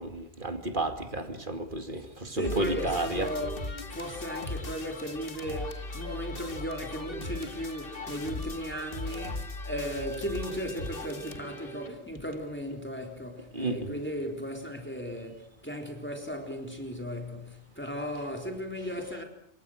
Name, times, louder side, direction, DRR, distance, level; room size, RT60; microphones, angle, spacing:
voice 1, 0.0-3.3 13.5-14.0, right 2 dB, 50° right, 2.6 m, -32 dB
voice 2, 2.3-3.5 3.9-19.2, equal, 10° left, 4.0 m, -36 dB
sound 1, 2.4-11.9, left 2 dB, 60° left, 2.5 m, -38 dB
28.5 x 25.0 x 6.5 m
omnidirectional pair, 1.1 m